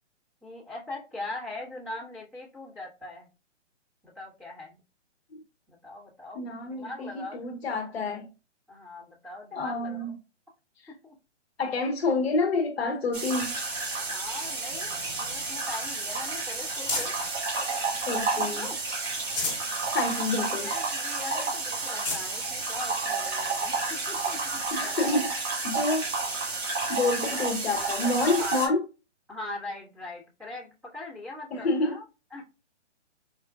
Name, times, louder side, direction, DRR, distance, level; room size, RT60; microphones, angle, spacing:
voice 1, 0.4-3.3 4.0-4.8 5.7-7.4 8.7-10.1 11.0-11.2 14.0-17.1 18.2-18.8 20.6-24.7 25.9-26.0 27.3-27.4 28.2-28.6 29.3-32.0 32.3-32.4, left 2 dB, 5° right, 1.1 m, -41 dB
voice 2, 6.3-8.3 9.5-10.1 10.8-10.9 11.6-13.5 18.1-18.7 19.9-20.7 24.7-26.1 26.9-28.8 31.5-32.0, left 3 dB, 60° left, 0.8 m, -28 dB
sound 1, 13.1-28.7, right 3 dB, 65° right, 1.8 m, -31 dB
sound 2, 14.7-17.4 17.9-18.6 19.0-19.7 20.2-20.3 20.6-20.7 21.4-21.5 21.8-22.3 23.1-23.2 25.0-25.1, left 3 dB, 25° left, 1.3 m, -36 dB
4.5 x 2.4 x 2.2 m
hypercardioid pair, 160°, 36 cm